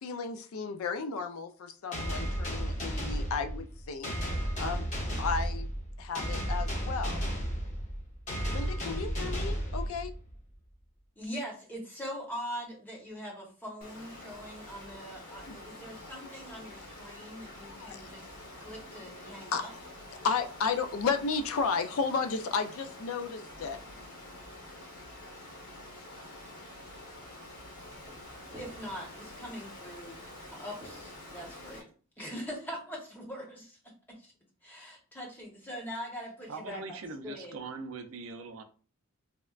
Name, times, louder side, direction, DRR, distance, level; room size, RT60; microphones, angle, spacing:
voice 1, 0.0-4.9 5.2-5.7 6.0-7.2 8.5-10.1 15.5-15.6 17.6-18.0 19.5-19.7 20.2-23.8, left 5 dB, 75° left, 8 dB, 0.4 m, -33 dB
sound 1, 1.9-10.4, equal, 35° left, 0.9 m, -33 dB
voice 2, 11.2-18.3 18.6-19.7 28.6-30.2 30.5-31.9 32.2-33.8 34.2-34.3 34.6-37.0 37.2-37.6, equal, 10° left, -2 dB, 0.8 m, -42 dB
Water, 13.8-31.8, left 1 dB, 90° left, 1.1 m, -47 dB
sound 2, 27.9-28.2 28.5-29.0 29.4-29.6 30.8-31.9, equal, 25° right, 0.7 m, -52 dB
voice 3, 36.5-38.6, right 3 dB, 70° right, 7 dB, 0.4 m, -41 dB
4.1 x 2.1 x 2.4 m, 0.39 s
head